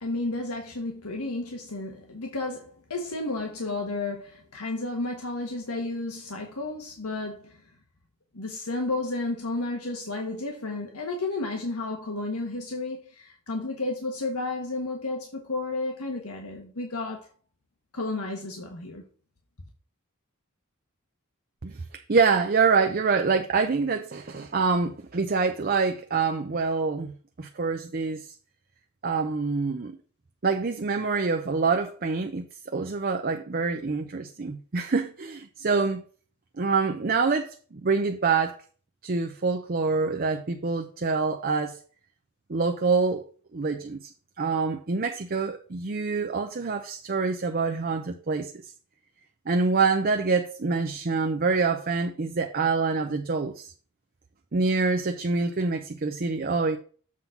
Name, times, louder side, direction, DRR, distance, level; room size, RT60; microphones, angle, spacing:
voice 1, 0.0-7.6 8.3-17.3 17.9-19.0, left 2 dB, 90° left, 1.3 m, -32 dB
voice 2, 22.1-28.3 29.0-30.0 30.4-36.0 36.6-38.5 39.0-41.8 42.5-43.2 43.5-44.0 44.4-48.5 49.5-53.7 54.5-56.8, right 4 dB, 40° right, 0.6 m, -26 dB
7.5 x 4.0 x 5.8 m
head